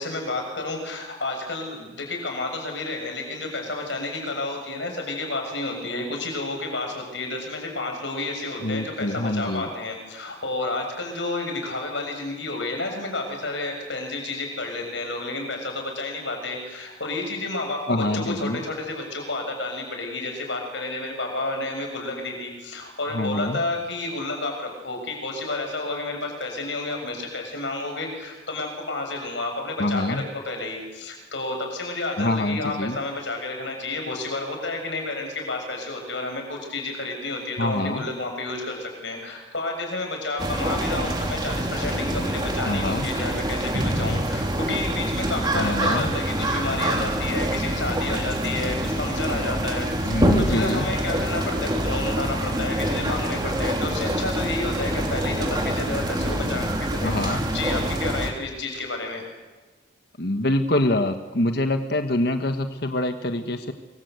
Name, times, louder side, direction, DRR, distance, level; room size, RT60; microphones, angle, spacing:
voice 1, 0.0-59.2, left 2 dB, 70° left, 3 dB, 6.9 m, -31 dB
voice 2, 8.6-9.7 17.9-18.6 23.1-23.6 29.8-30.2 32.2-33.0 37.6-38.1 42.6-43.1 45.5-46.1 50.0-50.9 57.0-57.4 60.2-63.7, left 1 dB, 55° left, 7 dB, 1.4 m, -25 dB
sound 1, 40.4-58.3, right 1 dB, 20° right, 3.1 m, -26 dB
25.5 x 23.0 x 8.3 m, 1.3 s
head